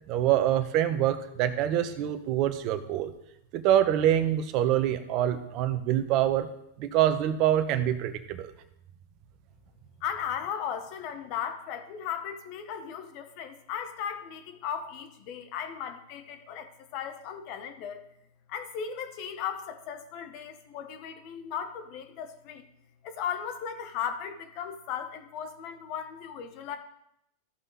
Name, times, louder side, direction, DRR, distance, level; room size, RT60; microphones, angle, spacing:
voice 1, 0.1-3.1 3.5-6.5 6.8-8.5, right 11 dB, 50° right, 9 dB, 1.1 m, -25 dB
voice 2, 10.0-18.1 18.5-22.6 23.0-26.8, left 8 dB, 50° left, 8 dB, 1.3 m, -36 dB
14.5 x 5.7 x 4.1 m, 0.78 s
hypercardioid pair, 110°, 0 cm